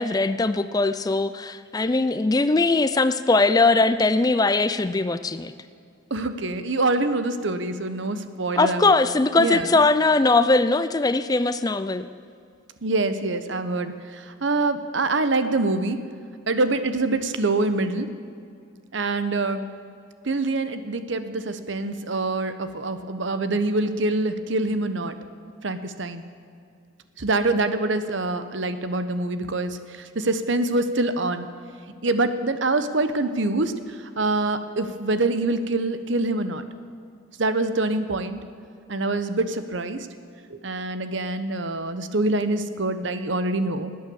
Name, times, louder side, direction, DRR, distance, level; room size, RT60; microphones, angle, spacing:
voice 1, 0.0-5.5 8.6-12.1, left 3 dB, 20° left, 12 dB, 0.4 m, -20 dB
voice 2, 6.1-8.9 9.4-9.7 12.8-16.0 16.5-18.1 18.9-19.7 20.2-25.1 25.6-26.2 27.2-29.8 30.1-31.5 32.0-33.7 34.2-36.6 37.4-38.4 38.9-40.1 40.5-43.9, right 2 dB, 70° right, 10 dB, 1.0 m, -25 dB
19.5 x 9.0 x 7.1 m, 2.4 s
head